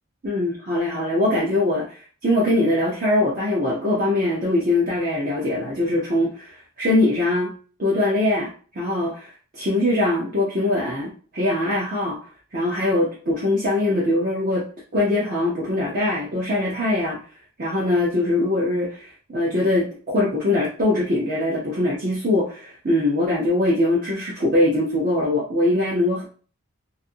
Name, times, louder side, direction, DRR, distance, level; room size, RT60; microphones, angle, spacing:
voice 1, 0.2-2.0 2.2-7.5 7.8-12.2 12.5-17.2 17.6-26.2, left 1 dB, 40° right, -6 dB, 0.6 m, -22 dB
2.5 x 2.5 x 2.7 m, 0.41 s
head